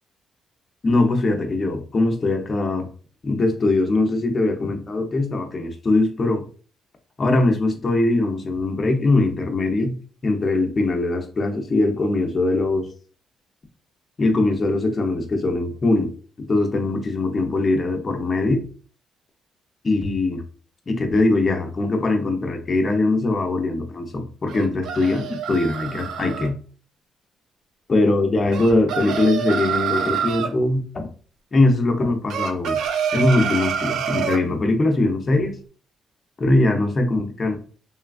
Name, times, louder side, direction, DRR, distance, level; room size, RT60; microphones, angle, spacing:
voice 1, 0.8-2.9 3.2-6.4 7.2-10.0 10.2-12.9 14.2-16.1 16.4-18.6 19.8-20.4 20.9-26.6 27.9-31.1 31.5-32.8 33.1-35.6 36.4-37.6, left 2 dB, 35° left, 4 dB, 0.6 m, -21 dB
sound 1, 24.5-26.5 28.5-30.5 32.3-34.4, right 7 dB, 75° right, 0.3 m, -26 dB
3.0 x 2.3 x 2.4 m, 0.40 s
cardioid pair, 90°, 0 cm